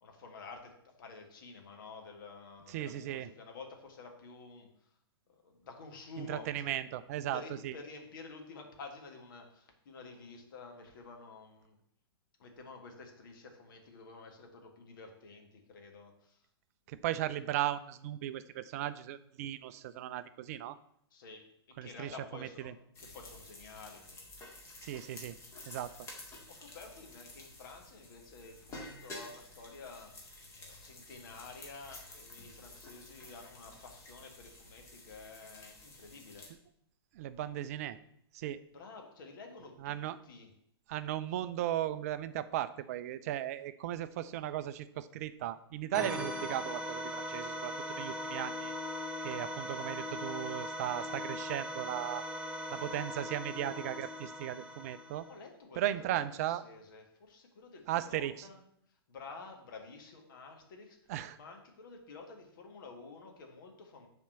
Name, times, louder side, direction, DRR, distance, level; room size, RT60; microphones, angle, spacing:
voice 1, 0.0-4.7 5.3-6.7 7.3-11.8 12.4-16.4 21.1-21.5 21.8-24.2 26.5-30.1 30.6-36.5 38.7-40.0 40.2-40.5 55.2-58.6 59.1-61.0 61.3-64.1, left 4 dB, 50° left, 3 dB, 1.7 m, -50 dB
voice 2, 2.7-3.3 6.2-7.7 16.9-20.8 21.8-22.1 22.4-22.7 24.8-25.4 25.7-25.9 37.1-38.0 38.3-38.6 39.8-40.2 40.9-48.7 49.2-52.2 52.7-55.3 55.8-56.6 57.9-58.5 61.1-61.4, right 12 dB, 35° right, 14 dB, 0.4 m, -36 dB
sound 1, 22.9-36.5, left 2 dB, 20° left, 1.9 m, -51 dB
sound 2, 45.9-55.4, equal, 5° right, 0.9 m, -40 dB
7.2 x 4.3 x 6.7 m, 0.71 s
figure-of-eight pair, 110°, 14 cm